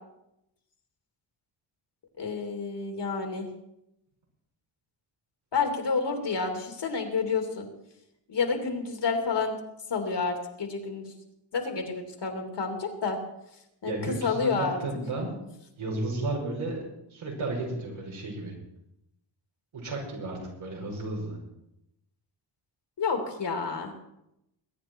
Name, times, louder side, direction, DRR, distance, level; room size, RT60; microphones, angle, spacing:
voice 1, 2.2-3.5 5.5-7.7 8.3-9.6 9.9-11.1 11.5-13.2 13.8-14.8 23.0-23.9, left 5 dB, 60° left, 4 dB, 2.8 m, -29 dB
voice 2, 13.9-15.3 15.8-16.8 17.1-18.5 19.7-21.4, right 2 dB, 80° right, -2 dB, 5.8 m, -33 dB
22.0 x 9.7 x 4.6 m, 0.84 s
wide cardioid pair, 110°, 47 cm